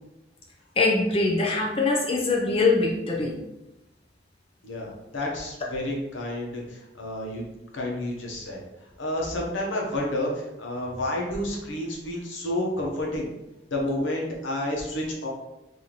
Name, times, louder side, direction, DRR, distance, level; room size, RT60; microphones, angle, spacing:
voice 1, 0.8-3.4, left 3 dB, 30° left, -2 dB, 0.5 m, -23 dB
voice 2, 4.6-8.6 9.0-13.3 13.7-15.3, left 1 dB, 80° left, -1 dB, 0.9 m, -30 dB
3.1 x 2.7 x 4.0 m, 0.96 s
head